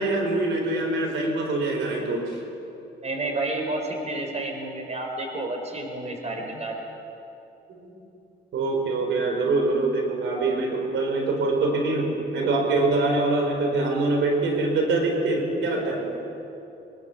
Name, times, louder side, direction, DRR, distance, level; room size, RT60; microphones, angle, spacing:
voice 1, 0.0-2.4 6.4-6.5 7.7-7.9 8.5-16.2, right 2 dB, 75° right, 2 dB, 4.3 m, -24 dB
voice 2, 3.0-6.8, right 2 dB, 35° right, 3 dB, 4.5 m, -30 dB
23.5 x 21.0 x 7.0 m, 2.8 s
cardioid pair, 90°, 20 cm